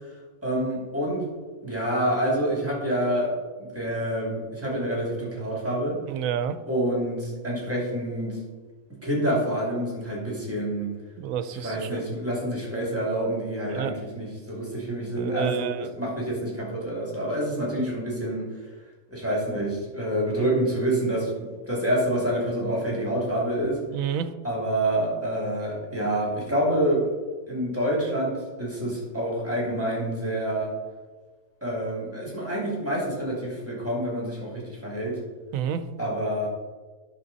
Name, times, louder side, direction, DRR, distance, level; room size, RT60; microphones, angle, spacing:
voice 1, 0.4-1.3 1.6-6.0 6.7-8.4 9.0-10.9 11.6-18.5 19.1-23.8 24.4-27.1 27.5-30.7 31.6-35.2 36.0-36.5, right 1 dB, 10° right, -4 dB, 2.7 m, -27 dB
voice 2, 6.1-6.6 11.2-12.0 13.7-14.0 15.2-15.9 23.9-24.3 35.5-35.9, right 8 dB, 75° right, 11 dB, 1.0 m, -29 dB
10.0 x 6.4 x 4.1 m, 1.3 s
omnidirectional pair, 1.5 m